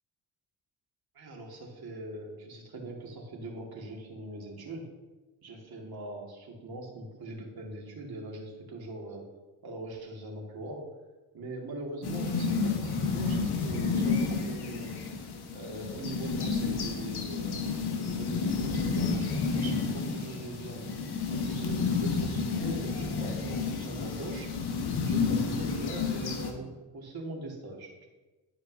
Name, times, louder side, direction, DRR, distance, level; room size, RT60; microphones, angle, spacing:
voice 1, 1.1-4.9 5.4-9.2 9.6-10.8 11.3-14.9 15.5-17.6 18.0-20.8 21.3-24.5 25.1-26.7 26.9-28.1, right 2 dB, 50° right, -1 dB, 2.2 m, -41 dB
sound 1, 12.0-26.5, left 4 dB, 50° left, 1.4 m, -30 dB
11.5 x 5.0 x 2.7 m, 1.2 s
hypercardioid pair, 50°, 49 cm